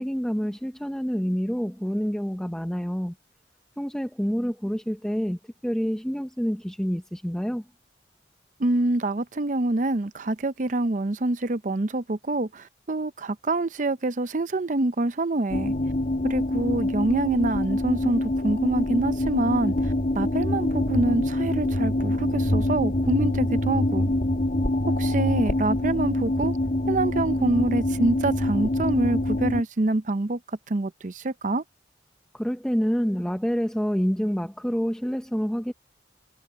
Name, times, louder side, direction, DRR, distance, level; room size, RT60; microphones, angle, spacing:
voice 1, 0.0-3.1 3.8-7.6 32.3-35.7, equal, 5° left, 0.7 m, -27 dB
voice 2, 8.6-15.7 16.2-24.1 25.0-26.6 26.9-30.4 30.7-31.6, right 2 dB, 45° right, 0.6 m, -26 dB
sound 1, 15.5-29.6, left 1 dB, 50° left, 1.8 m, -25 dB
head